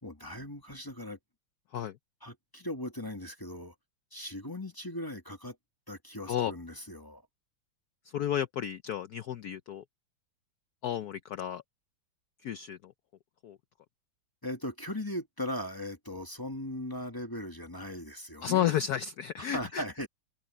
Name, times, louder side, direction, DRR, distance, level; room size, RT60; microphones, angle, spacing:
voice 1, 0.0-1.2 2.2-3.7 4.1-5.6 5.9-7.2 14.4-18.8 19.4-20.1, left 1 dB, 10° left, 1.8 m, -38 dB
voice 2, 8.1-9.8 10.8-11.6 12.4-12.9 13.4-13.6 18.4-19.8, left 10 dB, 65° left, 1.0 m, -32 dB
omnidirectional pair, 2.2 m